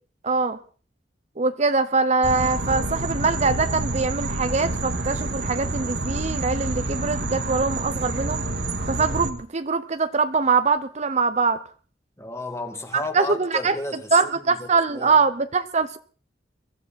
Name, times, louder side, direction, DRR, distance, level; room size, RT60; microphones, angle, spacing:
voice 1, 0.2-0.6 1.4-8.4 8.9-11.6 13.1-13.7 14.1-16.0, right 4 dB, 40° right, 0.8 m, -23 dB
sound 1, 2.2-9.3, right 2 dB, 80° right, 2.0 m, -28 dB
voice 2, 12.2-15.2, left 2 dB, 15° left, 2.2 m, -33 dB
23.0 x 14.5 x 4.2 m
head